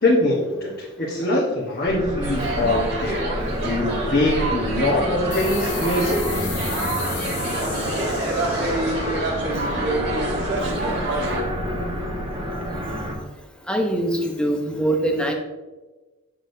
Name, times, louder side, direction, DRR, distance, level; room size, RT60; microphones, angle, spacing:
voice 1, 0.0-6.5, left 1 dB, 45° left, -7 dB, 1.1 m, -23 dB
sound 1, 1.8-13.1, equal, 25° right, 1.4 m, -28 dB
sound 2, 2.2-11.4, right 2 dB, 55° right, 1.3 m, -28 dB
sound 3, 5.3-10.5, left 8 dB, 85° left, 1.0 m, -36 dB
voice 2, 13.7-15.3, right 1 dB, 5° left, 2 dB, 0.6 m, -23 dB
8.0 x 6.3 x 2.7 m, 1.2 s
head